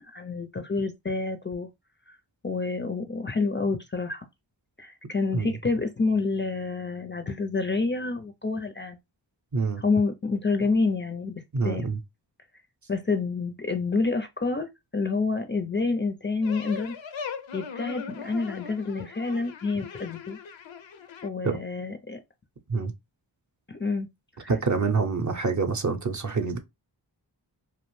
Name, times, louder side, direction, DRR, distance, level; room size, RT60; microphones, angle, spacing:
voice 1, 0.0-1.7 2.1-2.2 2.4-4.3 4.8-9.0 9.8-11.9 12.9-17.0 17.5-20.4 21.2-22.2 23.7-24.1 24.4-24.6, left 3 dB, 25° left, 0.4 m, -28 dB
voice 2, 9.5-9.8 11.5-12.0 21.4-21.5 22.7-22.9 24.5-26.6, right 4 dB, 40° right, 0.6 m, -26 dB
sound 1, 16.4-21.3, left 6 dB, 75° left, 0.6 m, -39 dB
2.5 x 2.0 x 3.0 m
cardioid pair, 40°, 46 cm